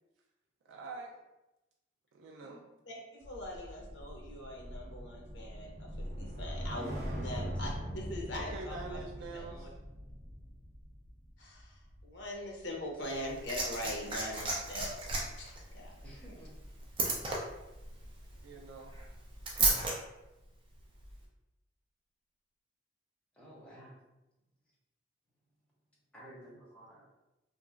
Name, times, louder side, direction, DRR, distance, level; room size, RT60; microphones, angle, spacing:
voice 1, 0.7-1.2 2.1-2.6 8.3-9.7 18.4-19.0, right 3 dB, 85° right, -1 dB, 0.3 m, -45 dB
voice 2, 2.9-9.0 9.3-9.7 11.4-16.4, left 1 dB, 70° left, 0 dB, 0.6 m, -42 dB
sound 1, 3.2-13.6 14.0-14.3, equal, 55° right, 0.9 m, -42 dB
Liquid, 13.0-19.9 21.0-21.1, right 3 dB, 25° right, 0.5 m, -35 dB
voice 3, 16.0-16.5 23.4-23.9 26.1-27.0, right 1 dB, 5° left, -7 dB, 0.7 m, -52 dB
2.8 x 2.3 x 2.4 m, 0.97 s
head